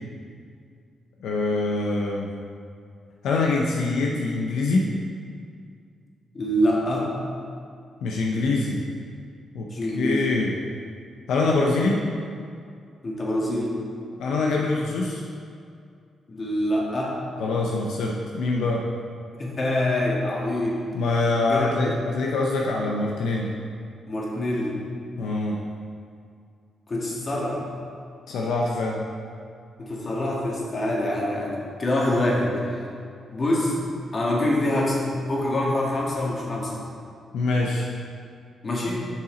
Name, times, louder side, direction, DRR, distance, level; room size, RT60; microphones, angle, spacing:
voice 1, 1.2-2.3 3.2-4.9 8.0-8.8 9.5-9.7 9.9-10.5 11.3-12.0 14.2-15.2 17.4-18.8 20.9-23.5 25.2-25.6 28.3-29.0 37.3-37.9, left 3 dB, 85° left, -2 dB, 0.7 m, -24 dB
voice 2, 6.3-7.1 9.7-10.3 13.0-13.8 16.3-17.1 19.4-20.9 21.5-22.0 24.1-24.8 26.9-27.6 29.8-32.8 33.3-33.8 34.1-36.8 38.6-39.1, left 1 dB, 40° left, -4 dB, 1.9 m, -25 dB
8.1 x 5.7 x 3.9 m, 2.3 s
cardioid pair, 75°, 0 cm